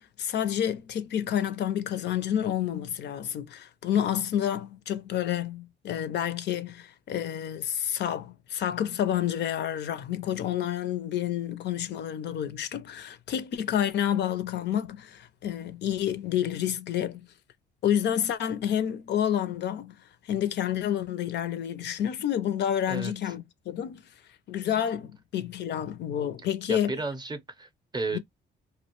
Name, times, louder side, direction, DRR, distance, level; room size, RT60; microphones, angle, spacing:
voice 1, 0.2-17.3 17.8-20.0 20.2-24.0 24.5-26.9 28.1-28.2, left 10 dB, 60° left, 0.4 m, -29 dB
voice 2, 26.7-28.2, right 3 dB, 20° right, 0.5 m, -33 dB
2.4 x 2.0 x 2.9 m
cardioid pair, 90°, 20 cm